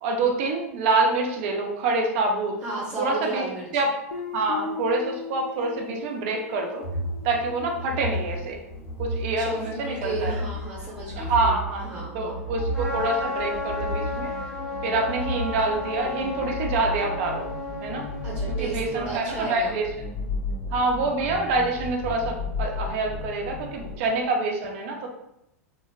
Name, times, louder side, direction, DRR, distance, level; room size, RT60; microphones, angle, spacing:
voice 1, 0.0-2.5 3.0-3.4 3.7-3.9 4.3-6.9 7.2-8.6 9.0-10.3 11.2-11.8 12.1-14.3 14.8-17.5 17.8-18.1 18.6-19.8 20.7-25.1, right 3 dB, 55° right, 2 dB, 0.6 m, -26 dB
voice 2, 2.6-3.8 9.4-12.4 18.2-19.8, right 2 dB, 15° right, -6 dB, 1.3 m, -34 dB
Guitar, 4.1-8.8, left 4 dB, 60° left, 0.5 m, -39 dB
sound 1, 6.8-24.0, left 1 dB, 40° left, 1.0 m, -33 dB
Trumpet, 12.7-18.9, left 3 dB, 5° left, 0.7 m, -33 dB
3.2 x 2.1 x 2.4 m, 0.81 s
hypercardioid pair, 95°, 8 cm